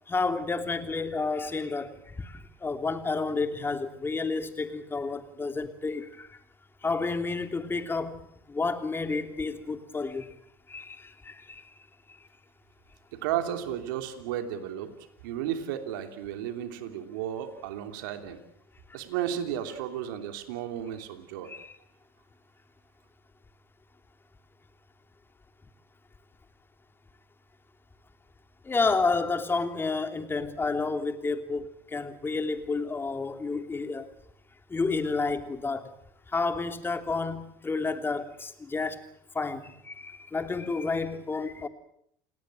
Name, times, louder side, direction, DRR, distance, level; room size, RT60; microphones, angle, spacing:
voice 1, 0.1-6.3 6.8-10.4 10.7-11.6 21.4-21.7 28.6-34.1 34.7-35.9 36.3-39.0 39.3-41.7, left 4 dB, 20° left, 3.0 m, -30 dB
voice 2, 13.1-14.9 15.2-18.4 18.9-21.5, right 10 dB, 75° right, 3.1 m, -33 dB
29.0 x 19.0 x 7.7 m
hypercardioid pair, 75°, 11 cm